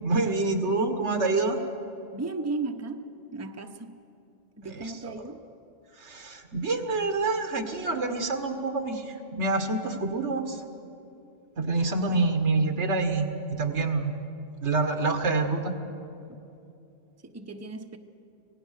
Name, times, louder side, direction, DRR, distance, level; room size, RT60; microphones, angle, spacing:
voice 1, 0.0-1.6 4.7-5.2 6.0-10.6 11.6-14.1 14.6-15.7, right 3 dB, 90° right, 6 dB, 1.8 m, -27 dB
voice 2, 2.1-4.0 4.6-5.4 12.1-12.3 16.3-16.4 17.2-18.0, right 3 dB, 15° right, 6 dB, 0.8 m, -35 dB
25.5 x 18.0 x 6.5 m, 2.7 s
omnidirectional pair, 1.1 m